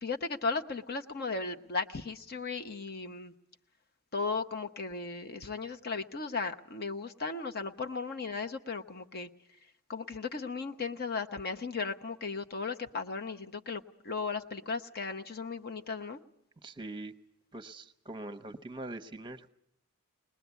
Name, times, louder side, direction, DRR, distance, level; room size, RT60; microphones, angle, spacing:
voice 1, 0.0-3.3 4.1-9.3 9.9-16.2, left 4 dB, 45° left, 6 dB, 0.9 m, -36 dB
voice 2, 16.6-17.1 17.5-19.5, right 2 dB, 20° right, 10 dB, 0.9 m, -42 dB
21.0 x 20.5 x 8.1 m, 0.74 s
head